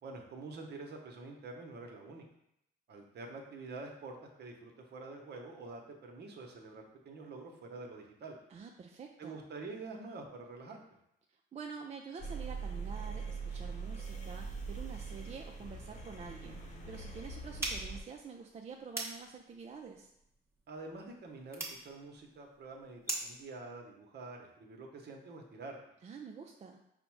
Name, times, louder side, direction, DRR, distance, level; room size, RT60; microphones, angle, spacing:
voice 1, 0.0-2.2 2.9-8.4 9.2-10.8 20.7-25.8, right 3 dB, 55° right, 2 dB, 0.9 m, -47 dB
voice 2, 8.5-9.4 11.5-20.1 26.0-26.8, right 5 dB, 35° right, 2 dB, 0.4 m, -47 dB
sound 1, 12.2-18.0, right 4 dB, 35° left, 0.8 m, -42 dB
sound 2, 17.6-23.4, right 2 dB, 15° right, 1.0 m, -43 dB
4.9 x 2.1 x 4.5 m, 0.79 s
cardioid pair, 90°, 20 cm